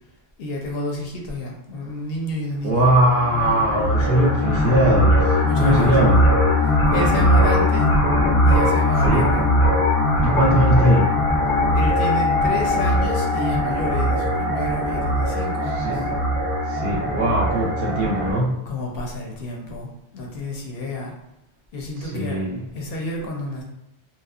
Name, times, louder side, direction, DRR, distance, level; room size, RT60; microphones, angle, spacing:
voice 1, 0.4-2.8 5.4-5.9 6.6-7.9 8.4-9.4 11.7-16.1 18.7-21.1 21.7-22.4 22.7-23.6, left 1 dB, 70° left, 0 dB, 0.7 m, -30 dB
voice 2, 2.6-6.2 9.0-9.2 10.2-11.2 15.7-16.1 16.7-18.6 22.0-22.7, right 1 dB, 60° right, -2 dB, 0.7 m, -20 dB
sound 1, 2.7-18.3, left 1 dB, 45° left, 0.4 m, -20 dB
2.8 x 2.1 x 2.3 m, 0.84 s
omnidirectional pair, 1.1 m